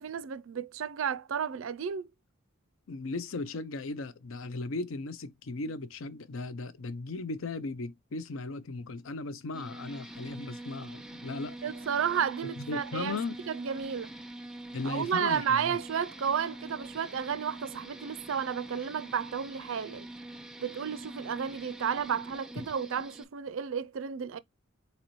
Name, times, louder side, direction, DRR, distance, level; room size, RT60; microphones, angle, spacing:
voice 1, 0.0-2.1 11.6-13.2 13.5-14.1 14.8-20.1 20.6-24.4, right 7 dB, 70° right, 0.4 m, -32 dB
voice 2, 2.9-11.6 12.6-13.3 14.7-15.8, left 3 dB, 70° left, 0.5 m, -37 dB
sound 1, 9.5-23.2, right 1 dB, 5° right, 0.4 m, -45 dB
4.1 x 4.0 x 3.0 m
head